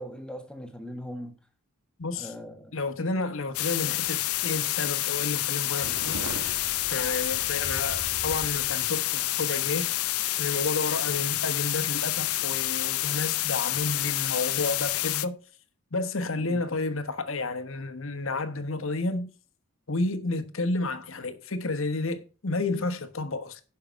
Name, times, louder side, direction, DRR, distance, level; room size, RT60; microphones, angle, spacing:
voice 1, 0.0-1.4 2.2-2.8 16.4-16.6, equal, 5° left, 1.4 m, -40 dB
voice 2, 2.0-2.3 2.7-6.6 6.9-9.9 10.4-15.4 15.9-19.3 19.9-23.6, left 3 dB, 65° left, 1.2 m, -31 dB
sound 1, 3.5-15.3, left 16 dB, 85° left, 0.6 m, -28 dB
sound 2, 5.8-8.8, right 2 dB, 80° right, 1.9 m, -40 dB
10.5 x 5.8 x 4.7 m
head